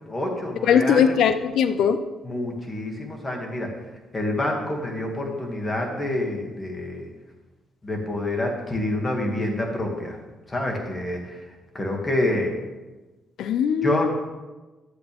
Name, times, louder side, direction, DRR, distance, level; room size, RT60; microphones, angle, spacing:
voice 1, 0.1-1.2 2.2-3.7 4.1-7.1 7.8-10.2 10.5-11.5 11.7-12.6 13.8-14.1, left 1 dB, 20° left, 0 dB, 2.2 m, -27 dB
voice 2, 0.7-2.0 13.4-14.1, left 7 dB, 75° left, 10 dB, 0.5 m, -20 dB
11.5 x 8.0 x 3.5 m, 1.2 s
cardioid pair, 90°, 0 cm